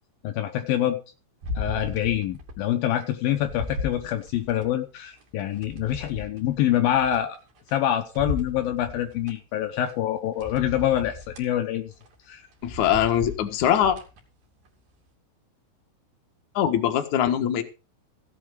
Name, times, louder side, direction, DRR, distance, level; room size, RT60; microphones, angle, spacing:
voice 1, 0.2-1.0 1.6-7.4 7.7-11.9 12.3-12.5, left 11 dB, 85° left, 6 dB, 2.0 m, -26 dB
sound 1, 1.4-2.6 3.0-4.7 5.2-7.8 8.1-9.3 9.9-10.0 10.4-11.5 11.9-12.1 12.5-14.2 14.7-14.8, left 2 dB, 45° right, 3.5 m, -36 dB
voice 2, 12.6-14.0 16.5-17.6, left 10 dB, 65° left, 6 dB, 2.0 m, -22 dB
16.0 x 8.7 x 5.1 m, 0.32 s
omnidirectional pair, 5.6 m